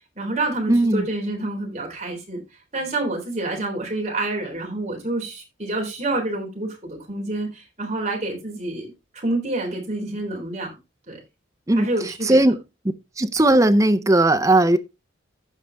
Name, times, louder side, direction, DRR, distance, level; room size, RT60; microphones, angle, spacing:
voice 1, 0.2-2.4 2.7-10.7 11.1-11.2 11.7-12.5, right 2 dB, 35° right, 3.6 m, -28 dB
voice 2, 0.7-1.1 11.7-12.6 13.2-14.8, right 1 dB, 15° right, 0.6 m, -17 dB
15.0 x 5.0 x 3.4 m
head